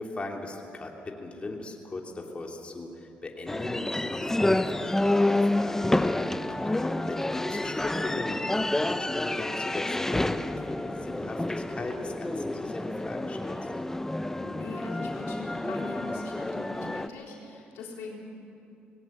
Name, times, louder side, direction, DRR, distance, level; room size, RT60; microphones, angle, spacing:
voice 1, 0.0-6.1 6.5-13.7, left 2 dB, 30° left, 0 dB, 3.0 m, -39 dB
sound 1, 3.5-17.1, left 1 dB, 10° left, 0.8 m, -29 dB
voice 2, 14.4-18.2, left 3 dB, 85° left, -1 dB, 3.9 m, -41 dB
19.5 x 18.0 x 9.1 m, 2.7 s
cardioid pair, 80°, 4 cm